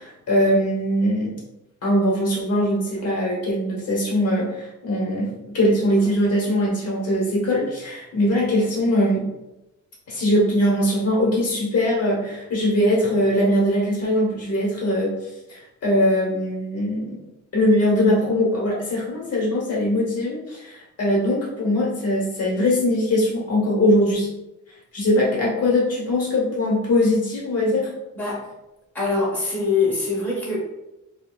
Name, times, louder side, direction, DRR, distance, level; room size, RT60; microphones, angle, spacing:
voice 1, 0.0-1.3 1.8-9.2 10.1-15.1 15.5-17.2 17.5-24.3 24.9-27.8, left 1 dB, 55° left, -4 dB, 1.0 m, -21 dB
voice 2, 28.9-30.6, left 4 dB, 5° left, -6 dB, 1.1 m, -23 dB
5.1 x 2.0 x 2.3 m, 0.95 s
wide cardioid pair, 175°, 30 cm